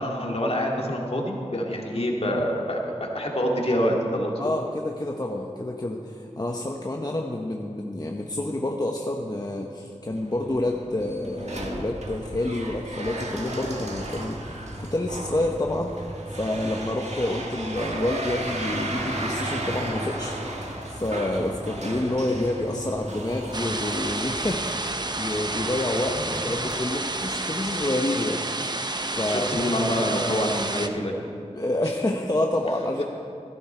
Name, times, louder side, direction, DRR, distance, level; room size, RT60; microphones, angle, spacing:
voice 1, 0.0-4.4 29.2-31.2 31.9-32.0, equal, 55° left, -1 dB, 2.2 m, -26 dB
voice 2, 4.4-16.0 16.3-20.4 20.9-28.5 28.7-29.7 31.5-33.0, left 1 dB, 30° left, 1 dB, 1.0 m, -28 dB
sound 1, 10.1-27.6, right 1 dB, 65° right, 1.6 m, -35 dB
sound 2, 23.5-30.9, right 2 dB, 35° right, 0.7 m, -30 dB
16.0 x 11.5 x 4.5 m, 2.5 s
wide cardioid pair, 45°, 12 cm